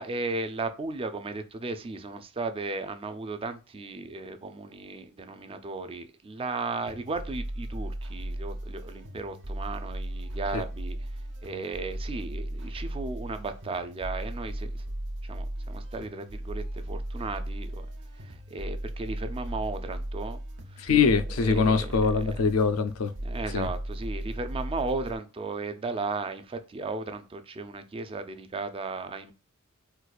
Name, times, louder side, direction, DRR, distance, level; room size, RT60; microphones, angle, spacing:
voice 1, 0.0-14.8 15.2-17.9 18.1-20.4 20.7-20.9 21.3-22.3 23.2-29.3, right 3 dB, 25° right, 0.4 m, -35 dB
sound 1, 6.9-25.2, right 1 dB, 60° right, 0.8 m, -36 dB
voice 2, 20.8-23.1 23.5-23.7, left 5 dB, 80° left, 0.5 m, -23 dB
4.3 x 2.4 x 2.3 m
head